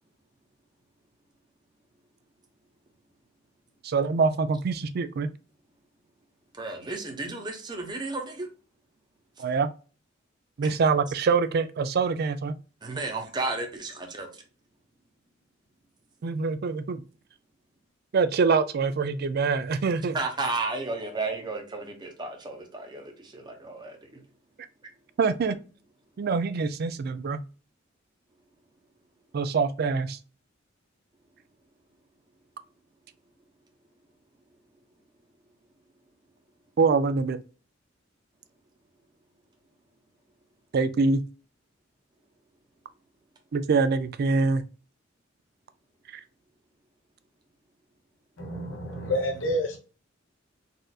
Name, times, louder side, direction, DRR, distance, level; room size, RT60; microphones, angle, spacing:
voice 1, 3.8-5.3 9.4-9.7 10.6-12.6 16.2-17.0 18.1-20.2 25.2-25.6 26.2-27.4 29.3-30.2 36.8-37.4 40.7-41.2 43.5-44.6, right 4 dB, 55° right, 0.4 m, -24 dB
voice 2, 6.5-8.5 10.6-10.8 12.8-14.4 20.1-24.1, right 3 dB, 20° right, 0.8 m, -33 dB
voice 3, 48.4-49.8, equal, 80° left, 1.0 m, -29 dB
4.2 x 2.5 x 2.3 m
head